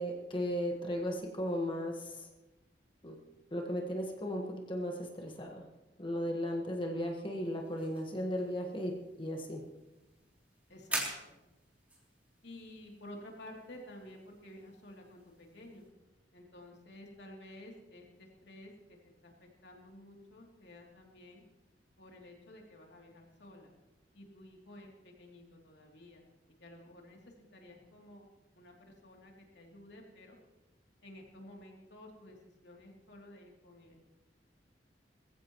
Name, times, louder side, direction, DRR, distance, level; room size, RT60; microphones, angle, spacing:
voice 1, 0.0-2.3 3.0-3.2 3.5-5.6 6.0-9.6, equal, 30° left, 1 dB, 1.5 m, -36 dB
sound 1, 7.4-15.9, right 1 dB, 10° right, 3.2 m, -46 dB
voice 2, 10.7-11.4 12.4-15.9 16.3-19.0 19.2-21.4 22.0-23.7 24.1-26.2 26.6-27.2 27.5-28.2 28.5-30.4 31.0-32.4 32.6-34.0, left 1 dB, 70° left, 0 dB, 3.1 m, -52 dB
21.5 x 15.0 x 3.1 m, 1.0 s
head